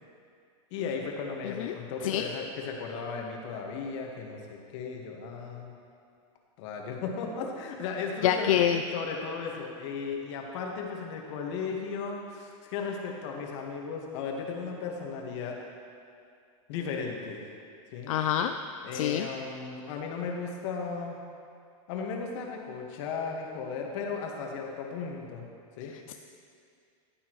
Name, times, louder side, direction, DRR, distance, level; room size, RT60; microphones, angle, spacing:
voice 1, 0.7-5.7 6.6-8.6 8.9-15.6 16.7-17.4 17.9-18.1 18.8-21.2 21.9-25.5 25.8-25.9, left 5 dB, 60° left, 1 dB, 1.6 m, -35 dB
voice 2, 8.2-8.8 18.1-18.5 18.9-19.3 26.1-26.2, left 10 dB, 80° left, 7 dB, 0.4 m, -26 dB
14.0 x 8.7 x 3.1 m, 2.3 s
supercardioid pair, 145°, 17 cm